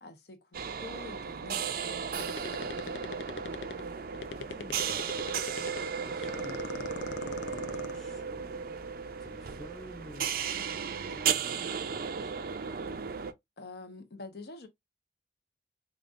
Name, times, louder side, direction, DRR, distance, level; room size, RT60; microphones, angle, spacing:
voice 1, 0.0-2.8 13.6-14.7, left 3 dB, 60° left, 0.9 m, -47 dB
sound 1, 0.5-13.3, right 6 dB, 55° right, 0.5 m, -35 dB
sound 2, 2.2-3.9 4.1-5.9 6.2-8.0, left 5 dB, 90° left, 0.6 m, -39 dB
voice 2, 3.2-3.6 4.4-5.3 6.0-8.8 9.2-12.5, left 1 dB, ahead, 0.6 m, -52 dB
5.1 x 2.4 x 2.5 m
head